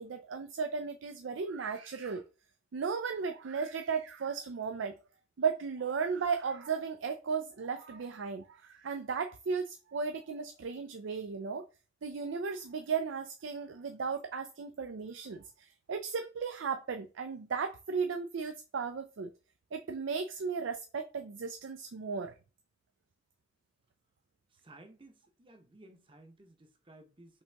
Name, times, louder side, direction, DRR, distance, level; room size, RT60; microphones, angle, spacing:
voice 1, 0.0-2.2 2.7-5.0 5.4-11.6 12.0-19.3 19.7-22.3, right 5 dB, 75° right, 0.4 m, -35 dB
voice 2, 24.5-27.4, right 2 dB, 25° right, 0.8 m, -56 dB
5.4 x 2.9 x 3.4 m
head